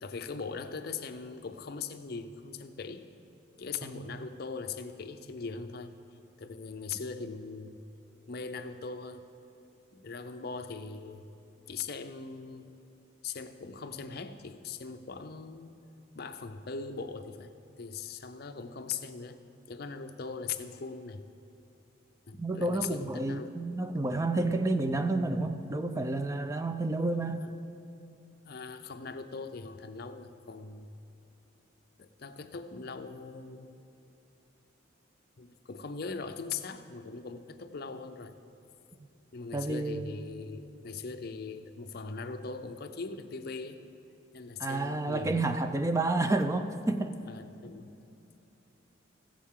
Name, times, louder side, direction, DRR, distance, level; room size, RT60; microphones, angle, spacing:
voice 1, 0.0-3.1 3.6-6.0 6.4-7.8 8.3-9.3 9.9-11.3 11.7-12.7 13.2-15.8 16.1-19.4 19.7-21.2 22.3-23.5 28.4-30.9 32.0-33.7 35.4-38.3 39.3-43.8 44.3-45.6 47.2-47.9, left 4 dB, 50° left, 8 dB, 0.6 m, -40 dB
voice 2, 3.8-4.3 22.4-27.4 39.5-40.1 44.6-47.1, right 2 dB, 15° right, 9 dB, 0.4 m, -30 dB
20.0 x 7.4 x 3.7 m, 2.8 s
head